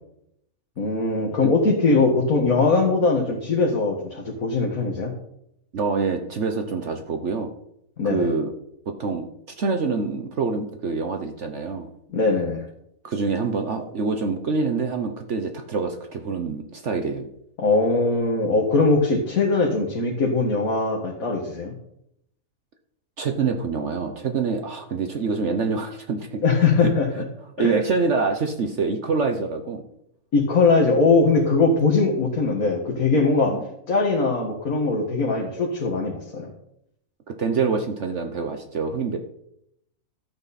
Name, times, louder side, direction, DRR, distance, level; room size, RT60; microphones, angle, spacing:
voice 1, 0.8-5.1 8.0-8.3 12.1-12.7 17.6-21.7 26.4-27.1 27.6-27.8 30.3-33.6 33.9-36.5, left 3 dB, 70° left, -1 dB, 2.1 m, -21 dB
voice 2, 5.7-7.5 8.0-8.5 8.9-9.3 9.6-11.9 13.0-17.3 23.2-26.4 27.6-29.8 33.5-33.6 37.3-39.2, right 4 dB, 55° right, 5 dB, 1.2 m, -26 dB
13.0 x 8.7 x 4.2 m, 0.76 s
omnidirectional pair, 1.6 m